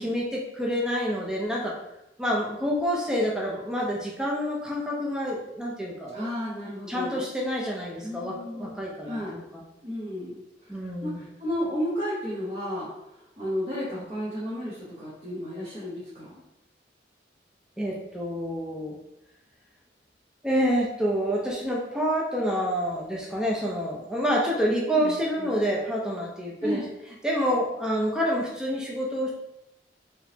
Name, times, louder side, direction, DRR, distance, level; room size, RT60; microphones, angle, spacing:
voice 1, 0.0-1.7 2.2-6.3 6.9-9.6 10.7-11.2 17.8-19.0 20.4-26.8 27.2-29.3, equal, 5° right, -3 dB, 0.5 m, -28 dB
voice 2, 6.1-7.3 8.0-9.4 9.8-16.3 24.9-25.6 26.6-26.8, equal, 35° right, -9 dB, 1.0 m, -33 dB
3.6 x 2.9 x 2.8 m, 0.85 s
head